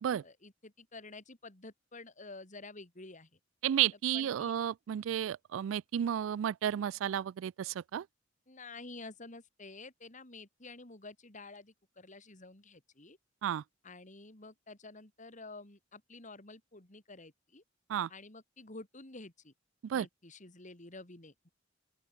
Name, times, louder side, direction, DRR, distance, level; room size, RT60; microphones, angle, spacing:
voice 1, 0.2-3.3 4.1-4.6 8.5-13.2 13.8-17.6 18.1-19.5 19.9-21.5, left 3 dB, 40° left, 3.2 m, -50 dB
voice 2, 3.6-8.1 13.4-13.6 17.9-18.1 19.8-20.1, right 10 dB, 85° right, 0.3 m, -32 dB
open air
head